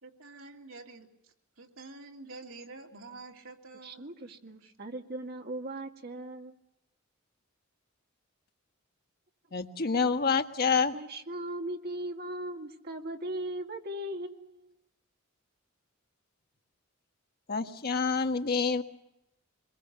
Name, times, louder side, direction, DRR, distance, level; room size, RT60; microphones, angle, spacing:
voice 1, 0.0-4.7, right 3 dB, 75° right, 2 dB, 3.1 m, -49 dB
voice 2, 3.8-6.5 10.9-14.7, right 1 dB, 50° right, 4 dB, 2.1 m, -38 dB
voice 3, 9.5-10.9 17.5-18.8, left 5 dB, 50° left, 5 dB, 1.6 m, -27 dB
25.0 x 22.0 x 7.0 m, 0.86 s
head